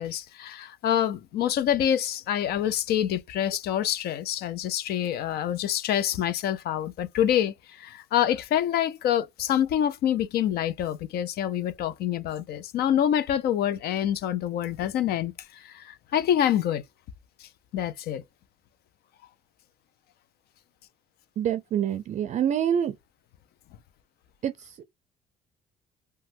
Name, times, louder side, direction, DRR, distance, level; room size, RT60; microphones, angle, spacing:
voice 1, 0.0-15.3 15.6-16.8 17.7-18.2, left 10 dB, 70° left, 0.5 m, -26 dB
voice 2, 21.4-22.9 24.4-24.8, right 9 dB, 45° right, 0.4 m, -26 dB
3.0 x 2.3 x 2.7 m
cardioid pair, 110°, 17 cm